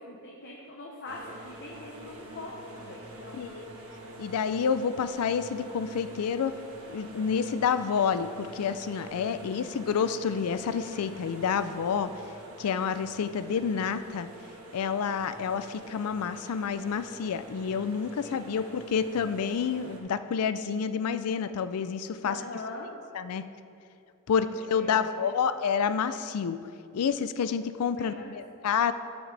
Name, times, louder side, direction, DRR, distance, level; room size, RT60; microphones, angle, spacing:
voice 1, 0.1-3.4 9.3-9.7 18.2-18.7 22.2-22.9 24.3-24.5 24.7-25.3 28.0-28.6, left 2 dB, 50° left, -2 dB, 0.9 m, -42 dB
sound 1, 1.0-20.0, right 1 dB, 70° right, 1.3 m, -46 dB
voice 2, 3.3-3.7 4.2-6.5 6.9-12.1 12.6-14.3 14.7-22.4 23.1-23.4 24.3-26.6 26.9-28.9, left 6 dB, 80° left, 12 dB, 0.4 m, -29 dB
13.0 x 6.2 x 3.3 m, 2.7 s
head